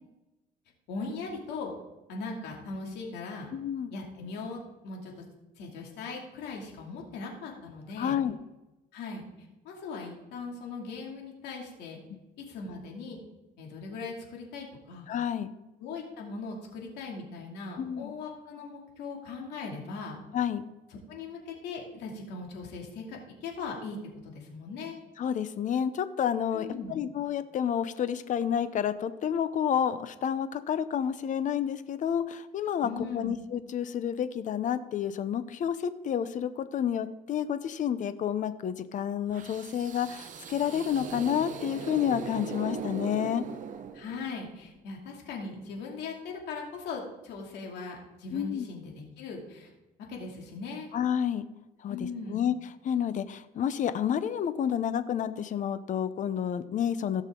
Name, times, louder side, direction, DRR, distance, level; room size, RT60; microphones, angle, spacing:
voice 1, 0.9-1.8 2.1-3.5 3.9-5.2 5.6-8.2 8.9-9.2 9.6-12.0 12.4-13.2 13.6-15.1 15.8-20.2 20.9-24.0 24.2-25.0 26.5-27.0 32.8-33.4 43.9-49.7 50.1-50.9 51.9-52.4, left 4 dB, 85° left, 0 dB, 2.5 m, -39 dB
voice 2, 3.5-3.9 8.0-8.4 15.1-15.5 17.8-18.1 20.3-20.7 25.2-43.4 48.3-48.7 50.9-51.4 51.8-52.5 52.8-57.2, left 9 dB, 50° left, 12 dB, 0.7 m, -30 dB
sound 1, 39.3-44.4, right 7 dB, 50° right, 1.0 m, -39 dB
16.0 x 6.4 x 3.8 m, 1.0 s
cardioid pair, 110°, 17 cm